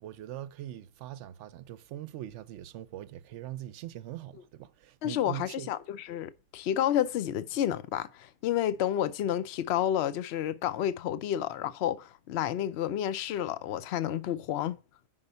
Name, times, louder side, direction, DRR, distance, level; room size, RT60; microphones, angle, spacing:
voice 1, 0.0-5.7, right 13 dB, 75° right, 0.9 m, -42 dB
voice 2, 5.0-14.8, left 11 dB, 65° left, 0.8 m, -30 dB
5.5 x 5.2 x 6.7 m
omnidirectional pair, 1.3 m